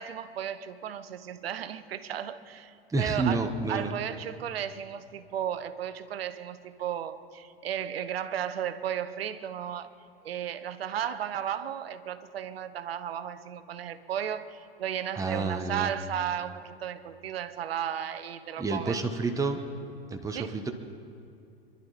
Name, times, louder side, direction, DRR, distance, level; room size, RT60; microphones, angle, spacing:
voice 1, 0.0-9.9 10.2-19.0 20.3-20.6, right 9 dB, 75° right, 1.1 m, -34 dB
voice 2, 2.9-4.0 15.2-15.9 18.6-19.6 20.1-20.7, right 3 dB, 10° right, 1.4 m, -29 dB
27.5 x 11.5 x 4.3 m
hypercardioid pair, 85°, 30 cm